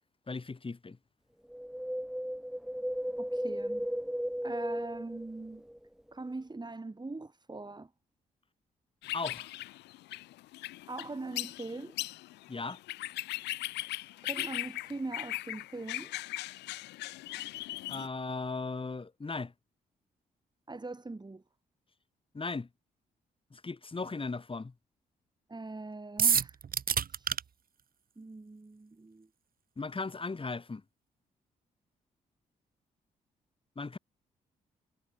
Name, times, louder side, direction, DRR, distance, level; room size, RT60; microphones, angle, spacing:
voice 1, 0.3-1.0 9.1-9.5 12.5-12.8 17.9-19.5 22.3-22.7 23.5-24.7 29.8-30.8 33.8-34.0, left 3 dB, 30° left, 3.6 m, -37 dB
Wind, 1.5-5.8 6.1-6.2, equal, 5° right, 1.6 m, -35 dB
voice 2, 3.2-3.9 4.4-5.7 6.1-7.9 10.9-12.0 14.2-16.1 20.7-21.4 25.5-26.6 27.1-27.4 28.2-29.3, right 3 dB, 25° right, 5.1 m, -42 dB
sound 1, 9.0-18.1, left 17 dB, 85° left, 5.5 m, -39 dB
sound 2, 26.2-27.4, right 7 dB, 55° right, 3.0 m, -27 dB
hypercardioid pair, 50°, 17 cm